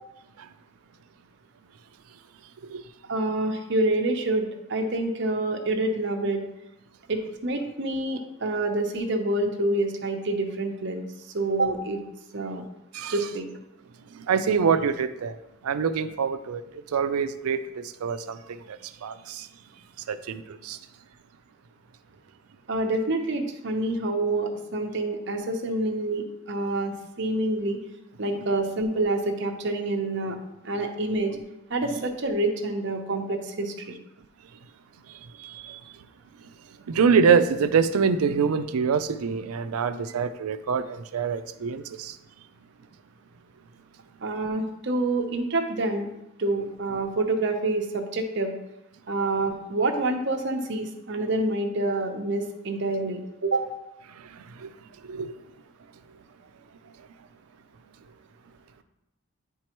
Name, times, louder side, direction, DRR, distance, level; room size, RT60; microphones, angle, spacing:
voice 1, 3.1-6.4 7.1-11.0 11.3-12.0 12.3-12.6 13.1-13.5 22.7-27.8 28.2-30.4 30.6-31.4 31.7-33.7 44.2-46.1 46.4-48.5 49.1-53.6, right 2 dB, 55° right, 0.7 m, -27 dB
voice 2, 14.1-15.4 15.6-19.5 20.1-20.8 35.4-35.8 36.9-42.2 54.1-54.7 55.0-55.4, right 6 dB, 85° right, 0.4 m, -25 dB
9.7 x 4.6 x 3.0 m
head